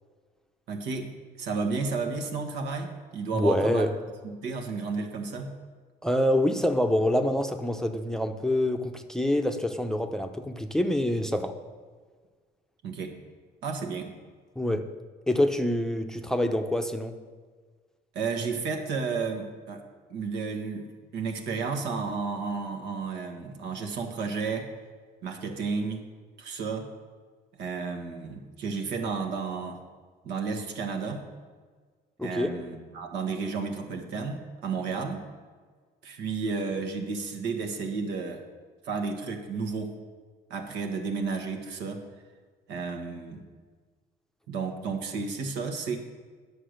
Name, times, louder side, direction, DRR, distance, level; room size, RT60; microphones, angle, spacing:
voice 1, 0.7-1.1 1.4-3.9 4.2-5.5 12.8-13.1 13.6-14.1 18.1-19.8 20.1-24.7 25.2-26.0 26.4-26.9 27.6-29.8 30.2-31.2 32.2-35.2 36.0-38.4 38.8-40.0 40.5-42.0 42.7-43.4 44.5-46.0, right 4 dB, 85° right, 4 dB, 1.4 m, -32 dB
voice 2, 3.3-3.9 6.0-11.5 14.6-14.9 15.3-17.1 32.2-32.6, left 1 dB, 5° left, 6 dB, 0.6 m, -26 dB
9.8 x 6.6 x 6.5 m, 1.5 s
cardioid pair, 110°, 17 cm